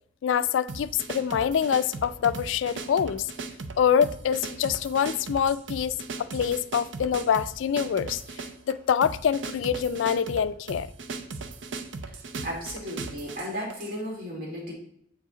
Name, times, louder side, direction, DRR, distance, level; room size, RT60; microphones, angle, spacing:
voice 1, 0.2-3.3 3.8-6.0 6.3-10.9, left 8 dB, 80° left, 0.3 m, -25 dB
sound 1, 0.7-14.0, right 3 dB, 70° right, 0.6 m, -38 dB
voice 2, 12.4-14.7, equal, 55° right, 2.4 m, -34 dB
8.3 x 4.8 x 3.9 m
head